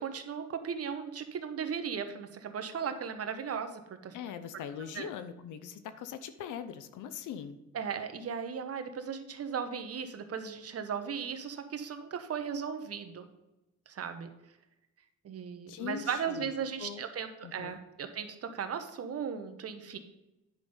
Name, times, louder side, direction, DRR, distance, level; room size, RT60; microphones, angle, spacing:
voice 1, 0.0-4.1 4.9-5.1 7.7-13.3 13.9-14.3 15.2-20.0, right 7 dB, 50° right, 8 dB, 1.3 m, -37 dB
voice 2, 4.1-7.6 15.7-16.5 16.8-17.0 17.4-17.8, left 8 dB, 80° left, 11 dB, 0.8 m, -41 dB
10.0 x 5.2 x 5.5 m, 0.95 s
cardioid pair, 90°, 30 cm